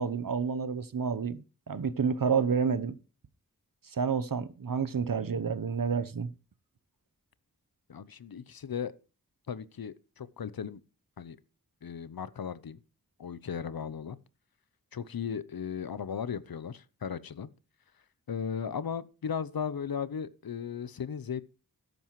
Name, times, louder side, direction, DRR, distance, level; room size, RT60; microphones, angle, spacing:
voice 1, 0.0-3.0 3.8-6.3, right 6 dB, 65° right, 0.9 m, -29 dB
voice 2, 7.9-8.9 9.5-10.8 11.2-11.4 11.8-12.8 13.2-14.2 14.9-17.5 18.3-21.4, left 7 dB, 75° left, 0.7 m, -36 dB
13.0 x 10.5 x 3.1 m
cardioid pair, 40°, 36 cm